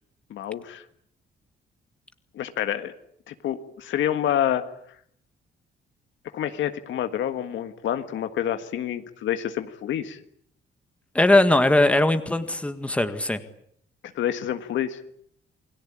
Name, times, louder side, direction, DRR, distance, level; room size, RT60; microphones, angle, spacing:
voice 1, 0.3-0.8 2.3-2.9 3.3-4.7 6.3-10.2 14.1-15.0, left 10 dB, 80° left, 8 dB, 1.7 m, -28 dB
voice 2, 11.1-13.4, left 2 dB, 5° left, 9 dB, 1.8 m, -20 dB
28.5 x 21.0 x 8.7 m, 0.68 s
cardioid pair, 140°, 20 cm